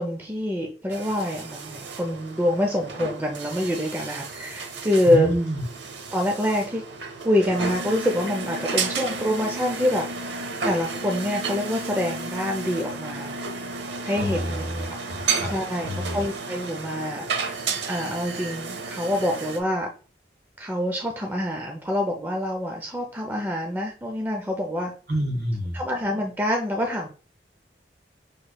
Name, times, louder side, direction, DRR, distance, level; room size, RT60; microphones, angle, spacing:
voice 1, 0.0-5.3 6.1-6.8 7.2-10.0 10.6-13.4 14.0-14.9 15.2-17.2 17.8-19.9 20.6-24.9 25.7-27.1, left 1 dB, 10° right, 1 dB, 0.5 m, -26 dB
sound 1, 0.9-19.6, right 4 dB, 85° right, 0.7 m, -32 dB
voice 2, 5.1-5.6 14.1-15.5 15.8-16.2 25.1-25.8, equal, 55° right, 1 dB, 1.7 m, -28 dB
6.5 x 3.1 x 2.2 m, 0.39 s
head